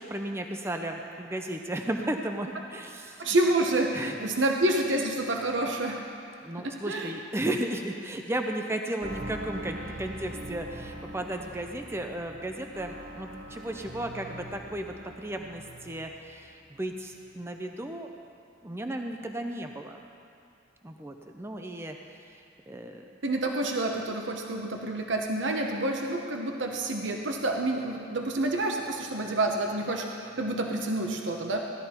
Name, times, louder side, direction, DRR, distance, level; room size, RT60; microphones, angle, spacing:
voice 1, 0.0-3.4 3.9-4.2 6.4-18.1 18.6-20.0 20.8-22.0 22.7-23.0, right 1 dB, 15° right, 4 dB, 0.6 m, -34 dB
voice 2, 3.2-6.0 6.6-7.1 23.2-31.6, right 2 dB, 70° right, 2 dB, 1.0 m, -28 dB
sound 1, 9.0-16.5 16.7-17.4 17.7-17.8, right 1 dB, 45° right, 1.0 m, -43 dB
16.5 x 12.0 x 4.4 m, 2.5 s
head